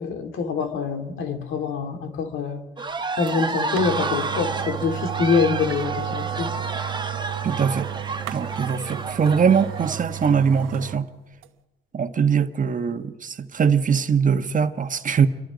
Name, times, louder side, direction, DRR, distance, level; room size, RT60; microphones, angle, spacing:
voice 1, 0.0-2.6 3.2-6.5, left 5 dB, 80° left, 2.7 m, -25 dB
sound 1, 2.8-10.3, right 3 dB, 25° right, 1.4 m, -30 dB
sound 2, 3.3-3.4 3.8-11.0 11.4-11.5, right 12 dB, 90° right, 1.2 m, -33 dB
voice 2, 7.4-7.9 8.3-11.1 11.9-15.3, right 6 dB, 40° right, 1.4 m, -21 dB
27.5 x 23.0 x 5.2 m
cardioid pair, 90°, 20 cm